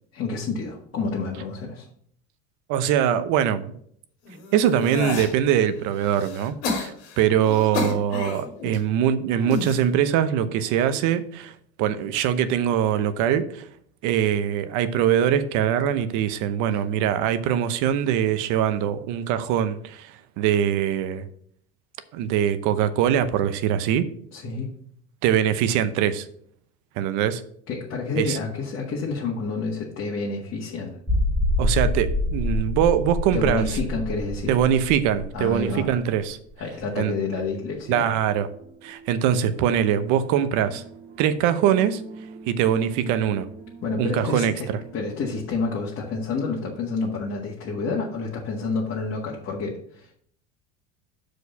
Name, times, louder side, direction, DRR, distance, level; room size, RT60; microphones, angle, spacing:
voice 1, 0.1-1.9 24.3-24.7 27.7-31.0 33.3-34.5 35.3-35.9 36.6-38.1 43.8-50.1, left 4 dB, 40° left, -3 dB, 1.7 m, -29 dB
voice 2, 2.7-3.8 4.5-11.5 11.8-13.6 14.0-21.2 22.1-24.0 25.2-26.3 27.0-27.4 28.2-28.4 31.6-33.6 34.5-36.4 37.0-37.1 37.9-38.5 38.8-40.8 41.2-42.0 42.5-43.5 44.0-44.5, right 9 dB, 65° right, 12 dB, 0.8 m, -22 dB
sound 1, 4.2-5.3 5.9-8.8 9.3-9.8 10.6-11.0, left 3 dB, 85° left, 2.3 m, -31 dB
sound 2, 31.1-36.5 36.8-36.9 37.4-37.5, left 1 dB, ahead, 2.3 m, -26 dB
sound 3, 37.2-46.0, right 4 dB, 25° right, 1.2 m, -44 dB
6.3 x 5.0 x 6.9 m, 0.64 s
supercardioid pair, 120°, 32 cm